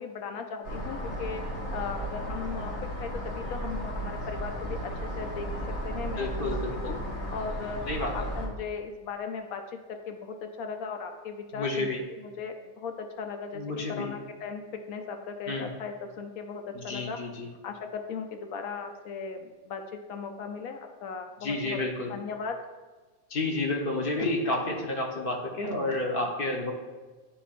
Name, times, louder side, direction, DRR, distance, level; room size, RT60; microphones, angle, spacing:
voice 1, 0.0-1.4 1.7-2.7 3.0-5.5 5.8-6.9 7.3-7.8 8.1-9.6 10.1-11.9 12.2-13.6 13.9-14.6 14.9-17.2 17.6-19.8 20.1-21.8 22.1-22.6, left 5 dB, 80° left, 5 dB, 1.1 m, -37 dB
sound 1, 0.6-8.5, equal, 65° left, 2.3 m, -34 dB
voice 2, 6.0-7.0 7.9-8.1 11.5-12.0 13.5-14.1 15.5-15.7 16.7-17.5 21.4-22.1 23.3-26.7, left 2 dB, 45° left, 0 dB, 1.1 m, -30 dB
11.0 x 4.3 x 2.5 m, 1.3 s
omnidirectional pair, 1.5 m